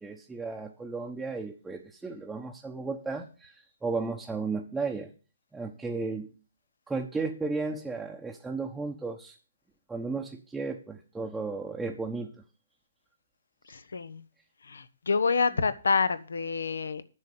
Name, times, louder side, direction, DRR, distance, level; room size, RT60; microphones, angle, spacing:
voice 1, 0.0-5.1 5.5-6.3 6.9-9.3 9.9-12.3, right 4 dB, 5° right, -1 dB, 1.0 m, -34 dB
voice 2, 13.7-14.2 14.6-17.0, left 4 dB, 75° left, 13 dB, 1.0 m, -28 dB
10.0 x 6.5 x 7.2 m, 0.36 s
figure-of-eight pair, 135°, 0 cm